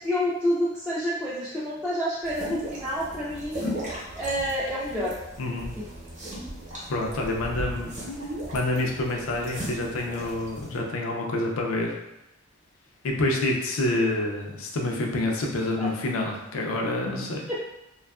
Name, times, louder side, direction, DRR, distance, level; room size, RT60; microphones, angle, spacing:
voice 1, 0.0-3.7 4.1-5.2 5.7-5.8 15.8-15.9 17.5-17.7, equal, 5° right, -10 dB, 0.3 m, -28 dB
sound 1, 2.2-10.8, equal, 35° right, 0.7 m, -37 dB
voice 2, 5.4-5.7 6.9-7.9 8.5-11.9 13.0-17.5, left 2 dB, 75° left, 0 dB, 0.4 m, -27 dB
2.7 x 2.3 x 2.3 m, 0.90 s
head